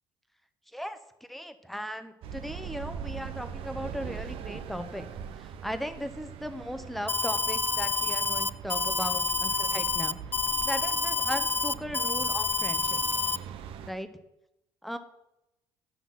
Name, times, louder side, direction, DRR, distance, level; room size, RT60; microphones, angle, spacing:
voice 1, 1.3-5.1 5.4-10.2 10.6-13.0 13.9-14.1 14.8-15.0, equal, ahead, 10 dB, 1.1 m, -37 dB
sound 1, 2.2-13.9, right 8 dB, 60° right, 0.8 m, -41 dB
Alarm, 7.1-13.4, left 4 dB, 20° left, 0.4 m, -28 dB
9.5 x 5.8 x 5.7 m, 0.88 s
hypercardioid pair, 60°, 10 cm